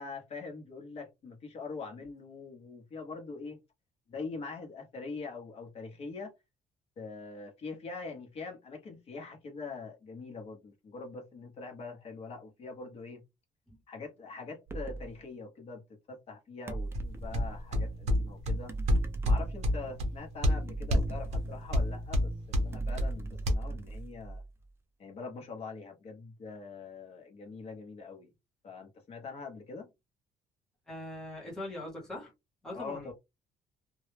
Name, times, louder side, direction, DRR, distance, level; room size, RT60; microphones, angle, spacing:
voice 1, 0.0-3.6 4.1-6.3 7.0-13.2 13.9-18.7 19.2-24.4 25.0-28.3 28.6-29.9 32.7-33.1, left 4 dB, 45° left, 0.8 m, -43 dB
sound 1, 14.7-15.1 16.7-17.6 18.7-19.9 20.7-22.0 22.7-24.6, right 3 dB, 15° right, 0.3 m, -38 dB
sound 2, 16.9-23.5, left 1 dB, 50° right, 0.7 m, -30 dB
voice 2, 30.9-32.3 32.6-33.1, left 1 dB, 5° left, 0.8 m, -41 dB
2.2 x 2.0 x 3.1 m
cardioid pair, 175°, 15 cm